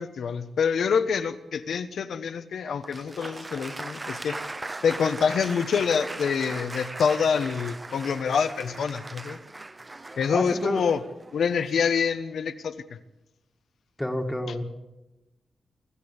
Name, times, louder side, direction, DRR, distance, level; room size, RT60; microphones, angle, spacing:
voice 1, 0.0-4.4 4.8-9.4 10.1-11.0 11.3-12.7, left 6 dB, 75° left, 8 dB, 1.2 m, -26 dB
Applause, 2.8-11.8, right 2 dB, 20° right, 0.7 m, -38 dB
voice 2, 10.3-10.8 14.0-14.6, left 1 dB, 5° left, 3 dB, 1.7 m, -28 dB
25.5 x 14.0 x 8.3 m, 1.0 s
wide cardioid pair, 150°, 0 cm